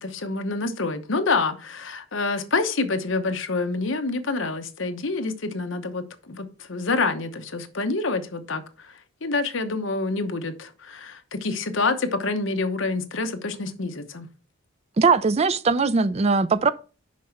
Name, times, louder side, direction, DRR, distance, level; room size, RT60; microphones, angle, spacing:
voice 1, 0.0-8.9 9.2-14.3, left 3 dB, 65° left, 1.0 m, -27 dB
voice 2, 15.0-16.7, right 4 dB, 30° right, 0.4 m, -20 dB
6.3 x 5.3 x 5.8 m
head